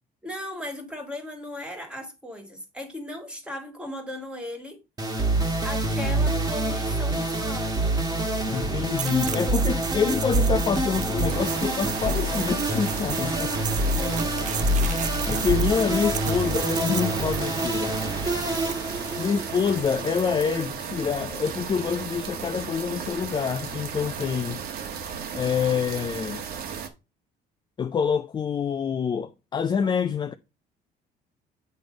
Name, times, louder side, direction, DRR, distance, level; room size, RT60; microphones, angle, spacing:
voice 1, 0.2-4.8 5.6-7.7 13.9-14.3, left 1 dB, 5° right, 1.9 m, -37 dB
sound 1, 5.0-20.4, right 1 dB, 20° right, 1.5 m, -26 dB
voice 2, 8.5-13.5 15.3-18.0 19.2-24.6 25.3-26.4 27.8-30.3, left 6 dB, 25° left, 0.4 m, -26 dB
sound 2, 9.0-18.8, right 9 dB, 45° right, 0.5 m, -35 dB
sound 3, 11.3-26.9, right 7 dB, 65° right, 1.2 m, -35 dB
7.9 x 3.2 x 5.0 m
cardioid pair, 110°, 17 cm